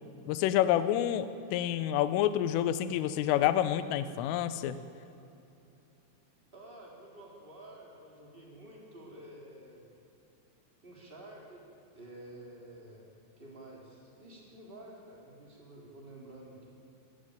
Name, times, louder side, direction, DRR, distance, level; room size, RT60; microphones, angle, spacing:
voice 1, 0.3-4.8, left 11 dB, 85° left, 13 dB, 3.3 m, -28 dB
voice 2, 6.5-9.8 10.8-11.7 11.9-13.1 13.4-16.7, right 1 dB, 10° right, -2 dB, 3.5 m, -50 dB
21.0 x 16.0 x 9.0 m, 2.8 s
omnidirectional pair, 5.9 m